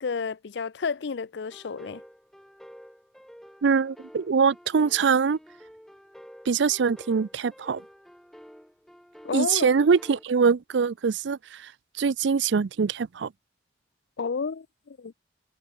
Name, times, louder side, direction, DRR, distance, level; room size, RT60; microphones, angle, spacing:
voice 1, 0.0-2.0 9.2-9.7 14.2-15.1, left 5 dB, 70° left, 0.5 m, -31 dB
sound 1, 1.5-10.2, equal, ahead, 4.6 m, -50 dB
voice 2, 3.6-5.4 6.5-7.8 9.3-11.7 12.0-13.3, right 5 dB, 75° right, 0.5 m, -23 dB
head